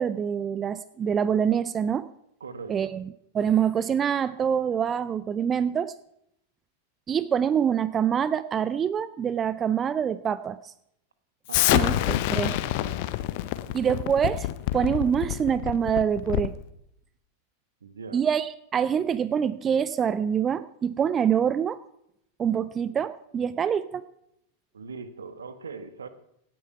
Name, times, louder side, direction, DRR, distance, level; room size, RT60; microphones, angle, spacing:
voice 1, 0.0-2.1 2.7-5.9 7.1-10.7 11.7-12.5 13.7-14.5 14.7-16.6 18.1-21.8 22.4-24.0, right 8 dB, 25° right, 16 dB, 0.5 m, -25 dB
voice 2, 2.4-2.9 11.5-13.1 13.6-14.0 17.8-18.2 24.7-26.1, right 5 dB, 70° right, 12 dB, 1.3 m, -41 dB
Explosion, 11.5-16.6, left 15 dB, 50° left, 0.8 m, -27 dB
17.0 x 9.2 x 5.7 m, 0.77 s
figure-of-eight pair, 90°, 0 cm